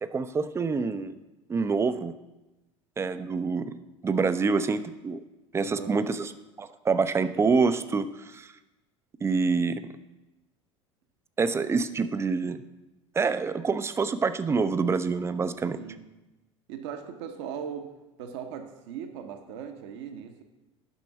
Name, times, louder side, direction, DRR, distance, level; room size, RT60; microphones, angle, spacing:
voice 1, 0.0-1.2 1.5-2.1 3.0-3.8 4.0-5.2 5.5-8.5 9.2-9.9 11.4-12.6 13.1-15.8, right 4 dB, 15° right, 12 dB, 0.5 m, -26 dB
voice 2, 5.6-6.0 15.8-16.0 16.7-17.9 18.2-20.4, right 8 dB, 55° right, 5 dB, 0.9 m, -39 dB
9.8 x 6.0 x 5.8 m, 1.0 s
figure-of-eight pair, 75°, 17 cm